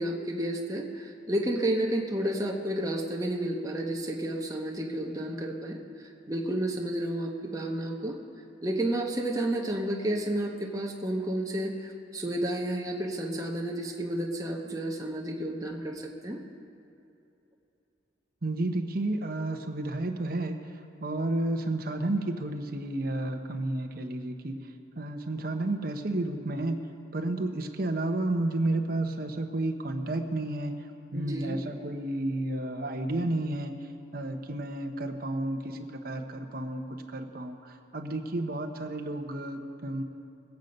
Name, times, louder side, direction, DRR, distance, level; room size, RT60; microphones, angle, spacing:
voice 1, 0.0-5.8 6.3-8.2 8.6-16.4 31.1-31.6, right 1 dB, 20° right, 0 dB, 1.1 m, -31 dB
voice 2, 18.4-24.6 25.0-26.8 27.1-30.8 31.1-33.8 34.1-40.0, right 2 dB, 50° right, 5 dB, 0.9 m, -31 dB
20.5 x 8.3 x 5.3 m, 2.7 s
head